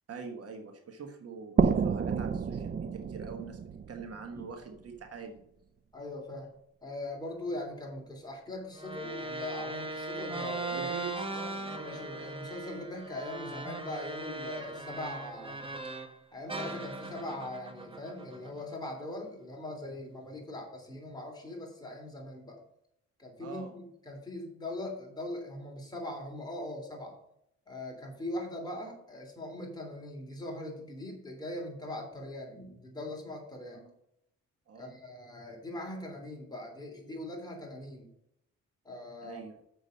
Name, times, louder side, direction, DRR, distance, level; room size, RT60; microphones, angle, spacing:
voice 1, 0.1-3.6 3.9-5.4 10.7-12.0 23.4-23.7 33.8-33.9 34.7-34.9 39.2-39.6, right 5 dB, 50° right, 4 dB, 1.4 m, -44 dB
sound 1, 1.6-5.1, right 6 dB, 35° right, 0.5 m, -30 dB
voice 2, 5.9-6.5 6.8-10.9 11.8-15.6 16.3-22.6 23.2-27.2 27.7-33.8 34.7-38.1 38.8-39.4, left 1 dB, 15° left, 0 dB, 3.3 m, -41 dB
sound 2, 8.8-16.2 16.5-18.9, right 2 dB, 15° right, 1.4 m, -39 dB
6.8 x 6.2 x 6.3 m, 0.77 s
cardioid pair, 90°, 30 cm